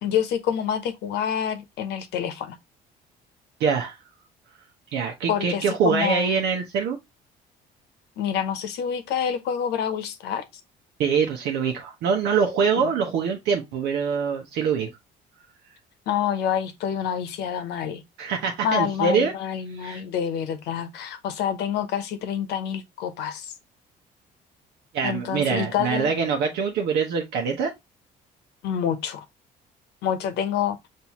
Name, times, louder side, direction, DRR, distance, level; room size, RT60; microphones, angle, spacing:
voice 1, 0.0-2.6 5.3-6.4 8.2-10.4 12.8-12.9 16.1-18.0 18.6-23.5 25.0-26.1 28.6-29.2 30.0-30.8, left 8 dB, 80° left, 0.9 m, -27 dB
voice 2, 3.6-4.0 4.9-7.0 11.0-14.9 18.2-19.3 19.8-20.0 24.9-27.7, right 6 dB, 80° right, 0.9 m, -24 dB
5.5 x 2.7 x 2.9 m
cardioid pair, 110°, 17 cm